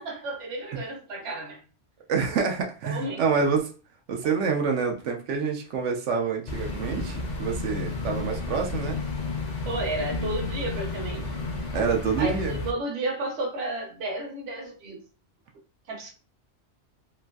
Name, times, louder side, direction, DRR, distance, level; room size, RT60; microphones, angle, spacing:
voice 1, 0.0-1.6 2.8-3.2 9.7-11.3 12.2-15.0 15.9-16.1, right 2 dB, 65° right, 1.0 m, -32 dB
voice 2, 2.1-3.7 4.1-9.0 11.7-12.5, right 5 dB, 90° right, 0.9 m, -27 dB
sound 1, 6.5-12.7, left 3 dB, 50° left, 0.5 m, -32 dB
3.0 x 2.5 x 2.2 m
omnidirectional pair, 1.2 m